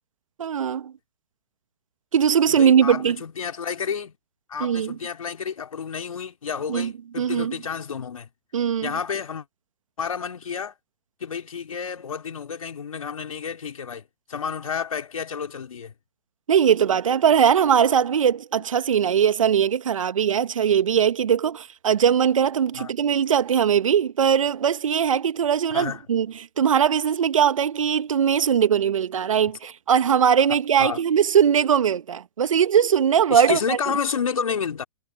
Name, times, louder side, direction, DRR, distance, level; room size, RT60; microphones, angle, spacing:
voice 1, 0.4-0.9 2.1-3.2 4.6-5.0 6.7-7.6 8.5-8.9 16.5-26.3 26.6-33.8, right 8 dB, 65° right, 1.6 m, -20 dB
voice 2, 2.5-4.2 4.5-8.3 8.8-9.5 10.0-10.7 11.2-15.9 22.8-22.9 25.7-26.0 30.8-31.0 33.3-34.8, left 6 dB, 70° left, 3.5 m, -30 dB
figure-of-eight pair, 115°, 18 cm